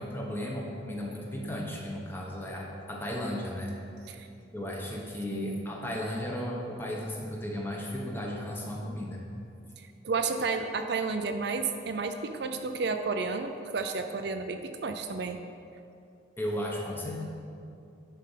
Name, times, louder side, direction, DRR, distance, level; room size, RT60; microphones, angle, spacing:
voice 1, 0.0-3.7 4.5-9.2 16.4-17.2, left 1 dB, 10° left, -2 dB, 1.1 m, -35 dB
voice 2, 5.3-5.6 9.8-15.4, right 4 dB, 55° right, 6 dB, 0.5 m, -32 dB
9.9 x 5.3 x 5.7 m, 2.6 s
head